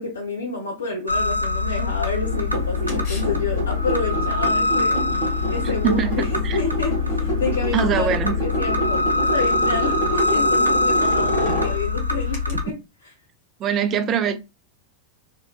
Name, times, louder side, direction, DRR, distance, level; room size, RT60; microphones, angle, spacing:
voice 1, 0.0-6.3 6.6-12.7, left 3 dB, 70° left, 0.7 m, -29 dB
sound 1, 1.1-12.6, left 3 dB, 85° right, 0.6 m, -23 dB
sound 2, 2.2-12.5, right 1 dB, 45° left, 1.4 m, -28 dB
voice 2, 5.6-6.6 7.7-8.4 12.5-12.6 13.6-14.4, right 7 dB, 30° right, 0.4 m, -23 dB
3.1 x 2.8 x 2.3 m
figure-of-eight pair, 90°, 0 cm